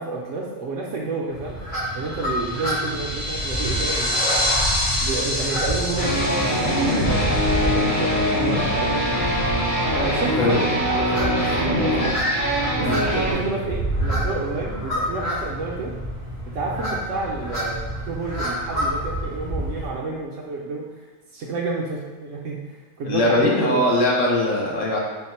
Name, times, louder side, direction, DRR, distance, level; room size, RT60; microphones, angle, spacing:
voice 1, 0.0-1.6 1.9-4.6 5.0-9.2 9.9-12.2 12.8-15.9 16.4-20.9 21.3-23.9, right 3 dB, 65° right, -2 dB, 0.8 m, -30 dB
Geese honking, 1.3-19.9, right 1 dB, 90° left, 1.8 m, -29 dB
sound 1, 2.0-8.8, left 1 dB, 10° left, 0.4 m, -27 dB
sound 2, 6.0-13.3, equal, 50° left, 1.4 m, -22 dB
voice 2, 23.0-25.0, left 1 dB, 65° left, -2 dB, 0.9 m, -20 dB
4.3 x 2.1 x 4.2 m, 1.3 s
omnidirectional pair, 1.6 m